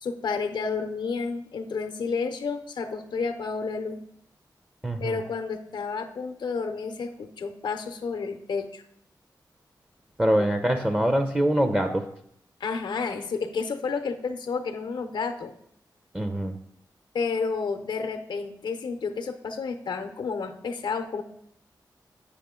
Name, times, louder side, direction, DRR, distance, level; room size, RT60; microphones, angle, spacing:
voice 1, 0.0-4.0 5.0-8.8 10.4-10.5 12.6-15.5 17.1-21.2, left 5 dB, 90° left, 7 dB, 0.6 m, -31 dB
voice 2, 4.8-5.2 10.2-12.1 16.1-16.5, right 1 dB, 15° right, 7 dB, 0.6 m, -24 dB
8.3 x 5.5 x 3.6 m, 0.71 s
wide cardioid pair, 90°, 8 cm